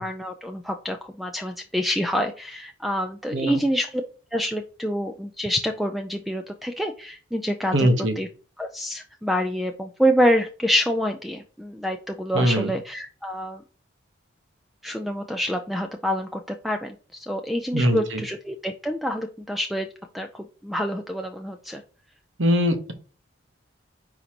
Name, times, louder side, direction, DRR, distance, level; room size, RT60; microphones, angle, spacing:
voice 1, 0.0-4.0 4.3-7.9 8.2-8.3 8.6-13.6 14.8-19.9 20.1-21.8, equal, ahead, 5 dB, 0.4 m, -27 dB
voice 2, 7.7-8.2 12.3-12.7 17.7-18.2 22.4-22.9, equal, 70° right, 8 dB, 1.1 m, -21 dB
9.4 x 4.0 x 2.9 m, 0.39 s
head